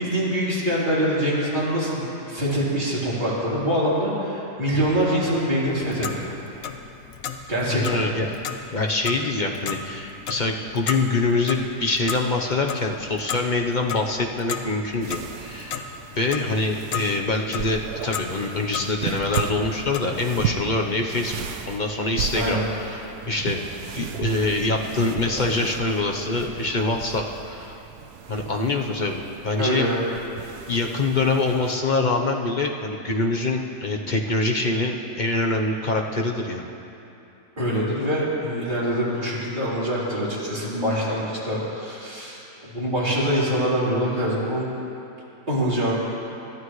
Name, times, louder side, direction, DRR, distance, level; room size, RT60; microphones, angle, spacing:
voice 1, 0.0-6.3 7.5-8.0 22.3-22.7 25.3-25.5 29.6-30.0 37.6-44.7 45.5-46.0, equal, 30° right, -9 dB, 4.0 m, -24 dB
Clock, 5.6-20.0, left 7 dB, 65° left, 1.1 m, -35 dB
voice 2, 7.7-8.3 8.7-15.9 16.2-21.4 21.7-23.6 23.9-27.8 28.3-29.9 30.7-36.7, left 3 dB, 35° left, 1 dB, 0.9 m, -25 dB
sound 1, 15.0-31.8, right 7 dB, 85° right, 1.3 m, -35 dB
27.0 x 12.0 x 3.2 m, 2.8 s
omnidirectional pair, 1.7 m